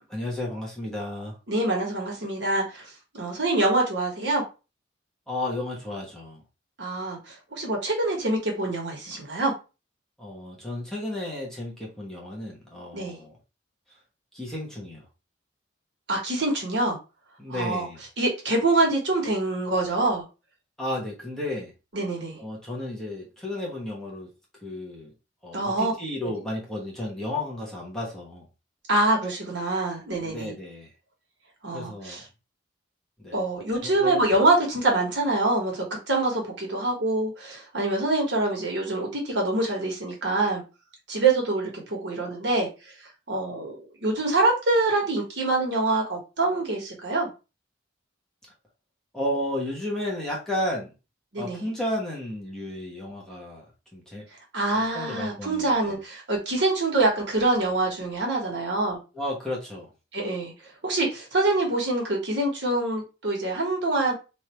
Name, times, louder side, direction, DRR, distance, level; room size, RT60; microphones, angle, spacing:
voice 1, 0.1-1.4 5.3-6.4 10.2-13.4 14.3-15.0 17.4-18.0 20.8-21.7 22.4-24.3 24.6-25.1 25.4-28.5 30.2-30.9 31.7-32.2 33.2-33.4 33.8-34.2 49.1-50.9 51.4-53.6 53.9-54.3 54.7-56.0 59.1-59.9, left 1 dB, 5° left, 1.1 m, -33 dB
voice 2, 1.5-2.8 3.1-4.4 6.8-9.5 12.9-13.2 16.1-17.0 17.5-17.9 18.2-20.2 21.9-22.4 25.5-25.9 26.2-26.3 28.9-30.5 31.6-32.2 33.3-40.6 41.1-42.7 43.3-47.3 51.3-51.7 54.5-59.0 60.1-60.5 60.8-64.1, right 2 dB, 60° right, 1.5 m, -25 dB
3.3 x 2.7 x 4.3 m
head